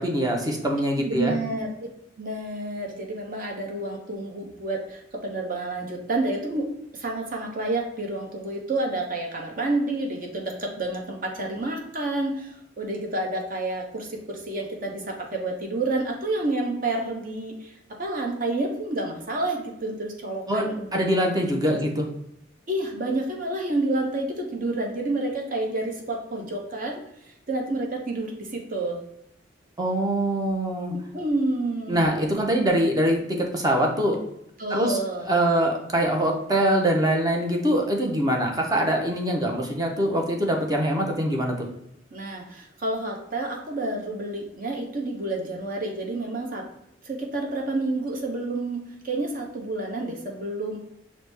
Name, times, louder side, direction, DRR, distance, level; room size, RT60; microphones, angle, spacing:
voice 1, 0.0-1.3 20.5-22.1 29.8-30.9 31.9-34.2 34.7-35.0 35.3-41.7, right 1 dB, 20° right, 1 dB, 0.6 m, -23 dB
voice 2, 1.0-1.7 2.2-6.7 6.9-17.7 18.0-20.9 21.9-22.0 22.7-29.0 30.9-32.1 34.6-35.3 42.1-46.7 47.0-50.8, right 2 dB, 50° right, 1 dB, 0.8 m, -29 dB
5.9 x 2.1 x 3.3 m, 0.78 s
head